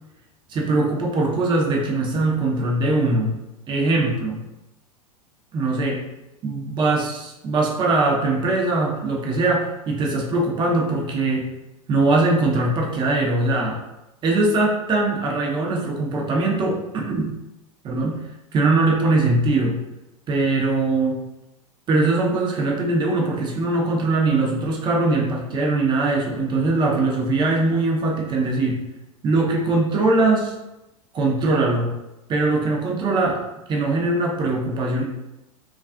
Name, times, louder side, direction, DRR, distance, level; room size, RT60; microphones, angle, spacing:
voice 1, 0.5-3.4 3.7-4.4 5.5-6.0 6.4-11.5 11.9-13.8 14.2-17.4 17.8-18.2 18.5-19.8 20.3-21.2 21.9-28.8 29.2-30.5 31.1-32.0 32.3-35.0, right 2 dB, 25° right, 0 dB, 0.5 m, -21 dB
2.4 x 2.3 x 2.2 m, 0.92 s
figure-of-eight pair, 90°, 19 cm